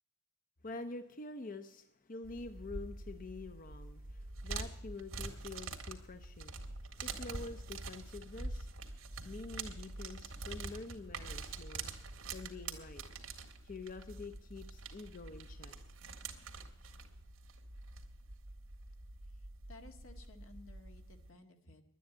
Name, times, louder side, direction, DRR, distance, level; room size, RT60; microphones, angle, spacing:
voice 1, 0.6-8.7 9.2-11.9 12.3-13.0 13.6-15.7, left 3 dB, 40° left, 9 dB, 0.7 m, -47 dB
sound 1, 2.2-21.3, right 3 dB, 85° right, 1.8 m, -46 dB
voice 2, 19.2-21.8, left 2 dB, 80° left, 5 dB, 1.8 m, -57 dB
11.5 x 9.3 x 9.2 m, 0.80 s
head